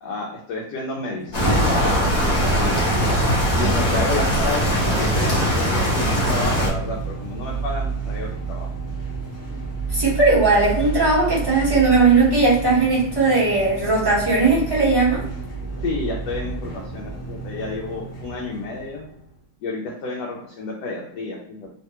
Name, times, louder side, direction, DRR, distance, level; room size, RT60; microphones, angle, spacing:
voice 1, 0.0-2.9 3.5-8.7 15.8-19.1 19.6-21.7, left 3 dB, 70° left, -2 dB, 1.0 m, -30 dB
sound 1, 1.2-19.3, right 4 dB, 30° left, 0.8 m, -31 dB
sound 2, 1.3-6.7, equal, 50° left, 1.1 m, -20 dB
voice 2, 9.9-15.2, right 3 dB, 15° right, -8 dB, 0.9 m, -18 dB
3.2 x 2.2 x 2.8 m, 0.73 s
omnidirectional pair, 2.1 m